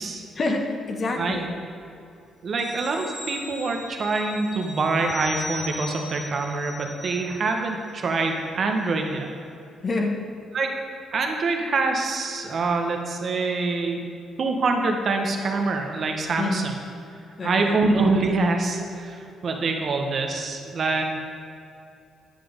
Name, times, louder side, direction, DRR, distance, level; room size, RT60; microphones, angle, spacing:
voice 1, 0.3-1.5 9.8-10.2 16.4-16.6 17.4-17.8, left 2 dB, 40° left, 3 dB, 1.2 m, -27 dB
voice 2, 2.4-9.3 10.5-10.7 11.1-14.0 14.4-16.6 17.4-21.0, right 3 dB, 50° right, 3 dB, 1.1 m, -25 dB
sound 1, 2.6-7.7 8.0-8.2, left 1 dB, 5° right, 1.8 m, -38 dB
10.0 x 5.9 x 5.2 m, 2.6 s
cardioid pair, 90°, 0 cm